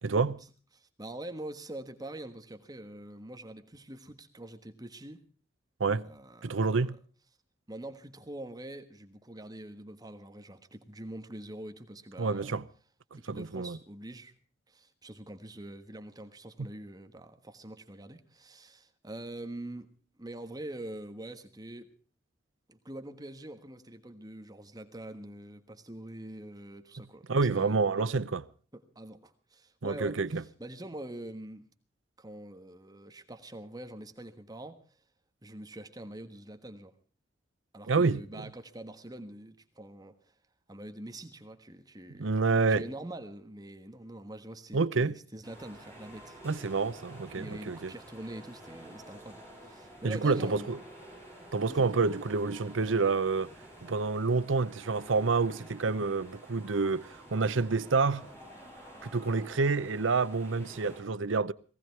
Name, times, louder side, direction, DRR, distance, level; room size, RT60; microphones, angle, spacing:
voice 1, 0.0-0.4 5.8-6.1 6.4-7.0 12.2-12.7 13.1-13.8 27.3-28.5 29.8-30.4 37.9-38.5 42.2-42.8 44.7-45.2 46.4-47.9 50.0-50.8 51.5-53.5 53.8-58.3 59.0-61.5, right 4 dB, 85° right, 0.7 m, -28 dB
voice 2, 0.7-5.2 6.0-6.9 7.7-12.5 13.1-14.3 14.7-19.9 20.2-21.9 22.7-28.1 28.7-31.7 32.2-35.0 35.4-36.9 37.7-40.3 40.7-42.3 42.7-46.4 47.3-50.8 51.7-52.0, right 1 dB, 20° right, 1.4 m, -44 dB
sound 1, 45.4-61.0, right 1 dB, 15° left, 7.5 m, -50 dB
19.0 x 16.5 x 4.6 m
head